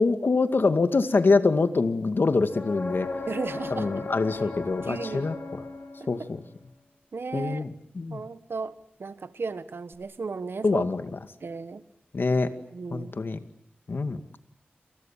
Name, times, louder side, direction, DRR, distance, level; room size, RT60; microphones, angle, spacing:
voice 1, 0.0-3.1 3.7-5.6 6.1-6.4 7.3-8.2 10.6-11.2 12.1-12.5 12.9-13.4 13.9-14.2, left 3 dB, 70° left, 9 dB, 2.2 m, -25 dB
sound 1, 2.5-6.3 9.9-10.0, left 3 dB, 45° left, 6.9 m, -36 dB
voice 2, 3.3-3.9 4.9-5.3 6.0-6.3 7.1-7.7 8.1-10.8 11.4-11.8 12.7-13.1, right 4 dB, 80° right, 12 dB, 1.5 m, -35 dB
28.5 x 28.0 x 7.5 m, 0.68 s
wide cardioid pair, 70°, 4 cm